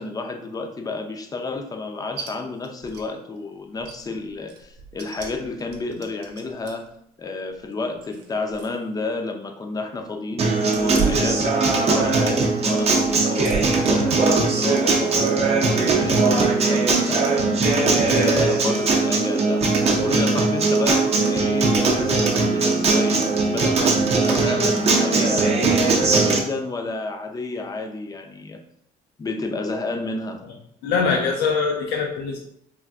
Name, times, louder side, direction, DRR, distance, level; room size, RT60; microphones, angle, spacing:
voice 1, 0.0-6.8 7.2-10.5 10.8-17.7 18.0-19.7 20.0-28.6 29.2-30.4, left 3 dB, 20° left, 5 dB, 0.4 m, -31 dB
sound 1, 2.2-2.3 2.6-3.1 3.4-3.5 3.8-6.9 7.5-8.8 9.1-9.2 10.6-12.1 12.4-13.9 14.4-14.7 16.1-16.4 16.9-17.3 18.1-18.3, right 6 dB, 85° right, 0.6 m, -35 dB
Acoustic guitar, 10.4-26.4, right 3 dB, 40° right, 0.5 m, -20 dB
voice 2, 30.8-32.4, left 5 dB, 80° left, 0 dB, 0.5 m, -22 dB
3.4 x 2.5 x 2.4 m, 0.74 s
cardioid pair, 110°, 17 cm